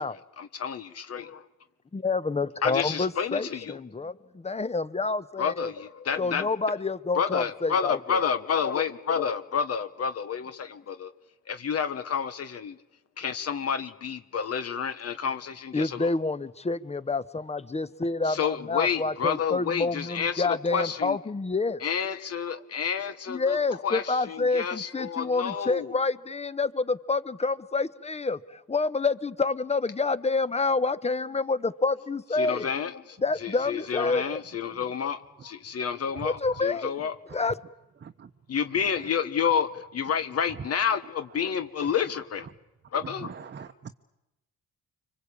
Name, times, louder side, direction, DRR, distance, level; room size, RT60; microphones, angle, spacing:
voice 1, 0.0-1.4 2.6-3.8 5.4-6.6 7.1-11.1 11.5-12.8 13.2-16.1 18.2-21.2 21.8-25.9 32.3-37.1 38.5-42.5 42.9-43.3, left 7 dB, 55° left, 10 dB, 1.3 m, -30 dB
voice 2, 1.9-5.7 6.2-8.2 15.7-21.8 23.3-32.7 33.2-34.4 36.2-37.0 37.3-37.5, left 3 dB, 20° left, 15 dB, 1.1 m, -28 dB
voice 3, 43.2-43.9, right 6 dB, 35° right, 7 dB, 1.0 m, -42 dB
25.5 x 25.0 x 8.7 m, 0.93 s
cardioid pair, 90°, 30 cm